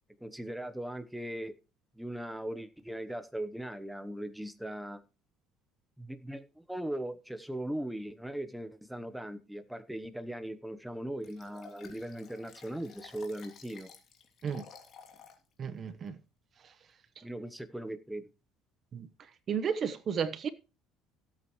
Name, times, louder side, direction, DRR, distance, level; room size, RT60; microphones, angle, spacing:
voice 1, 0.2-1.6 2.0-5.0 6.0-13.9 17.2-18.3, right 1 dB, ahead, 1.0 m, -39 dB
Liquid, 11.2-15.4 15.9-16.0, left 6 dB, 45° left, 2.9 m, -54 dB
voice 2, 15.6-16.2 18.9-19.1 19.5-20.5, right 7 dB, 35° right, 1.0 m, -33 dB
16.5 x 8.6 x 3.2 m
cardioid pair, 135°, 0 cm